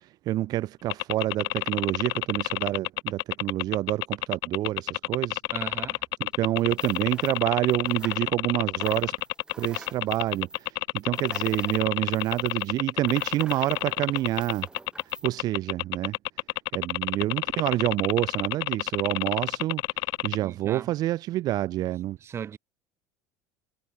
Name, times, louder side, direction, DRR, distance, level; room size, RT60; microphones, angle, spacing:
voice 1, 0.0-5.4 6.2-9.1 9.6-14.7 15.2-16.2 16.7-19.8 20.2-22.2, right 15 dB, 55° right, 1.5 m, -27 dB
sound 1, 0.9-20.4, left 23 dB, 65° left, 0.6 m, -29 dB
voice 2, 5.5-6.0 20.4-20.9 22.2-22.6, right 8 dB, 35° right, 2.2 m, -37 dB
sound 2, 6.6-8.5 8.8-15.3, right 2 dB, 10° right, 2.9 m, -48 dB
supercardioid pair, 115°, 8 cm